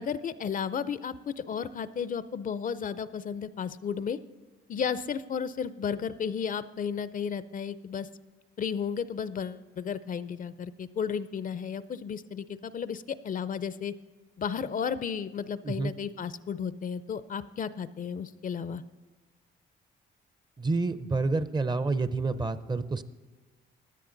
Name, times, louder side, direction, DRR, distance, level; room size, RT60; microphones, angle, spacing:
voice 1, 0.0-4.2 4.7-8.1 8.6-13.9 14.4-18.8, left 7 dB, 45° left, 15 dB, 0.5 m, -33 dB
voice 2, 20.6-23.0, right 3 dB, 20° right, 13 dB, 0.6 m, -28 dB
16.0 x 10.0 x 3.9 m, 1.3 s
cardioid pair, 90°, 20 cm